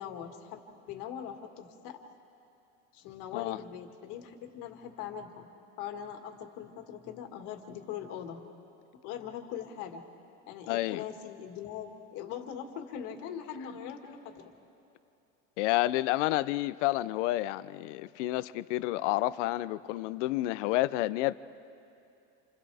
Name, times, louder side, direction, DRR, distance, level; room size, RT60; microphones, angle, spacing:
voice 1, 0.0-2.0 2.9-5.5 5.8-8.4 9.0-10.0 10.5-14.5, left 9 dB, 60° left, 2.1 m, -41 dB
voice 2, 10.7-11.0 15.6-21.4, left 17 dB, 75° left, 0.6 m, -30 dB
28.0 x 27.5 x 3.5 m
supercardioid pair, 135°, 36 cm